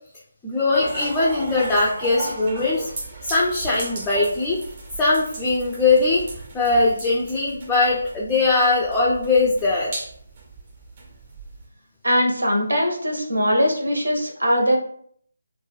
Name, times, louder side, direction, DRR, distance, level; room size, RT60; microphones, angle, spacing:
voice 1, 0.4-2.9 3.2-4.6 5.0-6.2 6.5-9.9, left 3 dB, 10° left, -5 dB, 0.3 m, -20 dB
sound 1, 0.7-11.7, right 2 dB, 30° right, 0.6 m, -37 dB
voice 2, 12.0-14.8, equal, 75° right, 1 dB, 0.7 m, -21 dB
2.2 x 2.1 x 3.2 m, 0.62 s
figure-of-eight pair, 155°, 0 cm